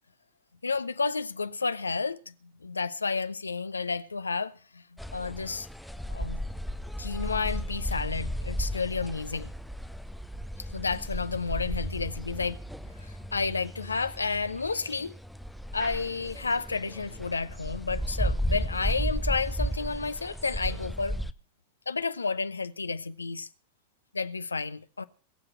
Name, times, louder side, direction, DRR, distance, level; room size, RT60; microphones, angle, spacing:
voice 1, 0.6-2.3 2.6-4.8 5.1-5.7 6.1-6.4 7.0-9.5 10.7-12.6 13.0-15.1 15.7-21.2 21.9-23.5 24.1-25.0, left 4 dB, 75° left, 0.8 m, -31 dB
sound 1, 5.0-21.3, equal, ahead, 0.8 m, -34 dB
21.5 x 7.6 x 7.5 m
figure-of-eight pair, 90°, 0 cm